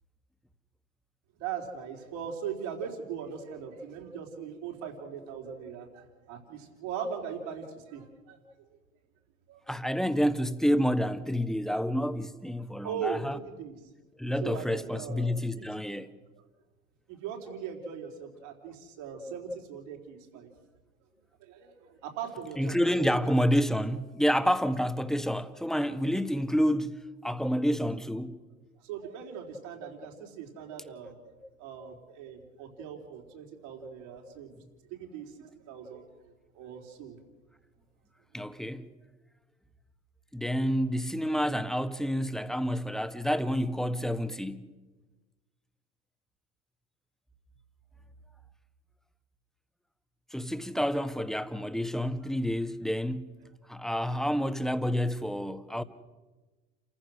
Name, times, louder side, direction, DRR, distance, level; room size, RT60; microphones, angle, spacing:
voice 1, 1.4-8.7 9.5-9.6 12.8-13.8 14.4-15.3 15.6-15.8 17.1-20.5 21.4-23.3 28.8-31.3 31.6-34.5 34.9-37.2, right 7 dB, 65° right, 4.1 m, -40 dB
voice 2, 9.7-13.4 14.2-16.1 22.6-28.4 38.3-38.9 40.3-44.7 50.3-53.3 53.7-55.8, equal, ahead, 1.4 m, -29 dB
30.0 x 15.0 x 6.3 m
figure-of-eight pair, 65°, 40 cm